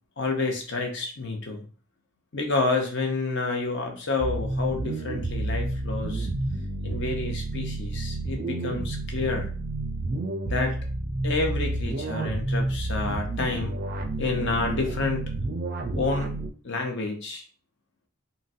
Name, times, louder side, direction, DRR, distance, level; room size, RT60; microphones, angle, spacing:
voice 1, 0.2-1.6 2.3-6.3 6.8-9.5 10.5-10.8 11.2-13.7 14.2-15.2 16.0-16.3 16.6-17.4, left 3 dB, 55° left, 3 dB, 0.6 m, -29 dB
sound 1, 4.2-16.5, right 2 dB, 40° right, 0.4 m, -30 dB
3.9 x 2.0 x 2.5 m, 0.40 s
head